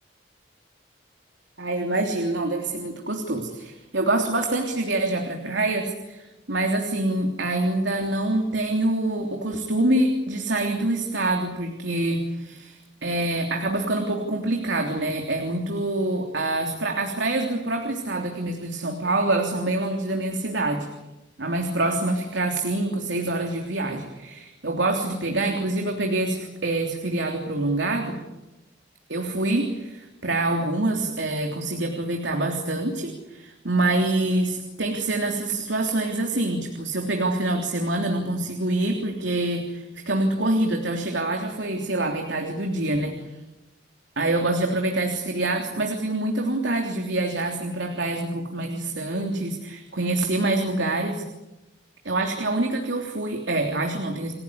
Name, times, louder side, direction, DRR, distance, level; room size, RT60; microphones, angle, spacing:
voice 1, 1.6-20.9 21.4-28.2 29.1-43.2 44.2-51.2 52.0-54.3, right 2 dB, 75° right, 3 dB, 3.3 m, -26 dB
29.0 x 17.0 x 9.9 m, 1.0 s
head